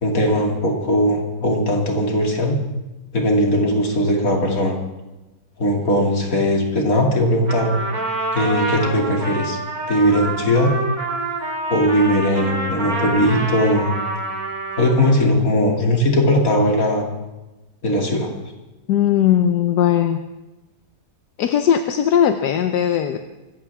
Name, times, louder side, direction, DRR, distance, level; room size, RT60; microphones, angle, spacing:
voice 1, 0.0-2.6 3.1-4.7 5.6-7.7 8.3-9.6 9.9-10.7 11.7-14.0 14.8-17.0 17.8-18.3, equal, 55° left, 0 dB, 3.1 m, -19 dB
Trumpet, 7.5-15.3, right 2 dB, 55° right, 3.4 m, -27 dB
voice 2, 18.9-20.2 21.4-23.2, left 9 dB, 80° left, 8 dB, 1.4 m, -18 dB
25.0 x 15.0 x 3.6 m, 1.1 s
omnidirectional pair, 1.8 m